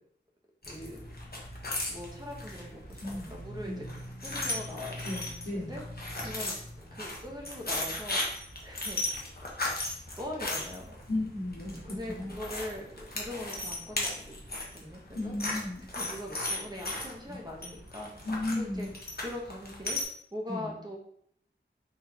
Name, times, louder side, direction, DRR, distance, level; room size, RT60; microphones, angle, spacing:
sound 1, 0.6-20.0, left 1 dB, 50° left, 1.0 m, -37 dB
voice 1, 0.7-1.1 1.9-3.8 4.2-5.0 5.5-5.8 6.2-6.6 6.9-8.3 8.6-9.0 10.1-10.9 11.8-14.3 14.7-15.4 15.9-18.3 18.6-18.9 19.2-20.0 20.3-21.0, left 1 dB, 20° right, -2 dB, 1.0 m, -41 dB
voice 2, 3.0-3.3 3.6-3.8 5.0-5.8 11.1-12.3 15.1-15.8 17.3-17.4 18.2-18.9 20.5-20.7, left 2 dB, 70° left, -5 dB, 1.4 m, -35 dB
3.9 x 3.4 x 2.8 m, 0.66 s
wide cardioid pair, 45°, 20 cm